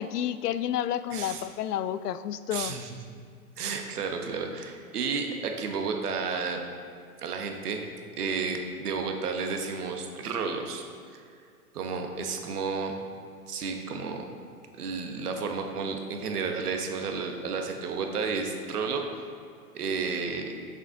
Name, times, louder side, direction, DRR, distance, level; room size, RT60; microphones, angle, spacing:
voice 1, 0.0-2.8, left 10 dB, 90° left, 14 dB, 0.5 m, -30 dB
voice 2, 2.5-2.8 3.6-6.6 7.2-7.8 8.2-10.8 11.7-13.0 13.5-14.2 14.8-19.0 19.7-20.5, right 5 dB, 80° right, 4 dB, 1.1 m, -32 dB
7.2 x 5.7 x 3.6 m, 2.3 s
hypercardioid pair, 140°, 45 cm